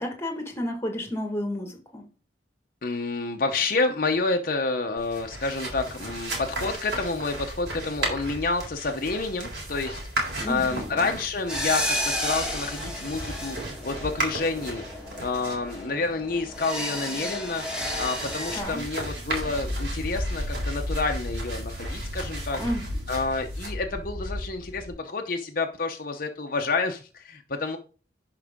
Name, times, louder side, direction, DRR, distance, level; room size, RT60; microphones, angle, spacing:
voice 1, 0.0-2.0 10.4-11.1 18.5-18.8 22.6-22.9, left 1 dB, 15° left, 4 dB, 1.7 m, -31 dB
voice 2, 2.8-13.6 13.8-14.8 15.2-22.6 23.1-27.8, left 3 dB, 50° left, 4 dB, 0.8 m, -29 dB
sound 1, 5.0-24.9, right 1 dB, 65° right, 3.8 m, -34 dB
sound 2, 11.5-18.6, left 1 dB, 5° right, 2.2 m, -32 dB
11.0 x 4.9 x 3.6 m, 0.37 s
head